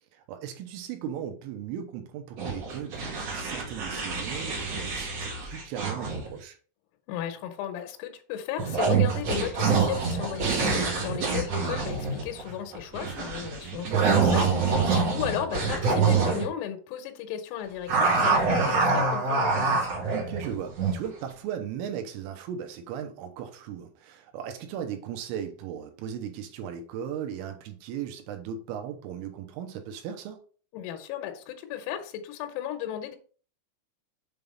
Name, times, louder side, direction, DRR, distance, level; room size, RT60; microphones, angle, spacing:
voice 1, 0.1-6.6 13.6-14.0 14.3-14.4 20.1-30.4, right 9 dB, 80° right, 6 dB, 3.4 m, -37 dB
sound 1, 2.4-6.4 8.6-16.4 17.9-21.1, right 4 dB, 65° right, 1.6 m, -26 dB
voice 2, 7.1-14.4 14.9-19.8 30.7-33.2, left 10 dB, 90° left, 7 dB, 3.7 m, -35 dB
8.0 x 3.6 x 5.3 m, 0.42 s
omnidirectional pair, 6.0 m